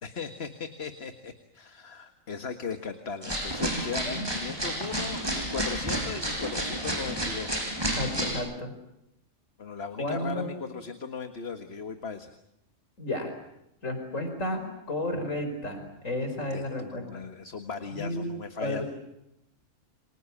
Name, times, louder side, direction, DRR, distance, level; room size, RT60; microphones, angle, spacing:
voice 1, 0.0-7.5 9.6-12.3 16.5-18.8, left 5 dB, 50° left, 7 dB, 1.9 m, -37 dB
sound 1, 3.2-8.3, right 1 dB, 20° right, 7.2 m, -31 dB
voice 2, 7.9-8.7 10.0-10.5 13.0-13.3 13.8-17.0 17.9-18.3 18.6-18.8, left 1 dB, 75° left, 6 dB, 5.1 m, -32 dB
29.0 x 25.0 x 7.2 m, 0.82 s
omnidirectional pair, 1.4 m